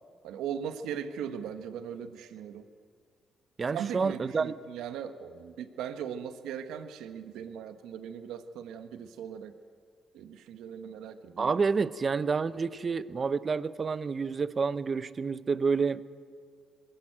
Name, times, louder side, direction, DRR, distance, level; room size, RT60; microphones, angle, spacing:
voice 1, 0.2-2.7 3.7-9.5 10.1-11.5, right 8 dB, 90° right, 9 dB, 1.2 m, -39 dB
voice 2, 3.6-4.5 11.4-16.0, right 5 dB, 40° right, 16 dB, 0.7 m, -29 dB
22.0 x 14.5 x 8.9 m, 2.1 s
cardioid pair, 90°, 0 cm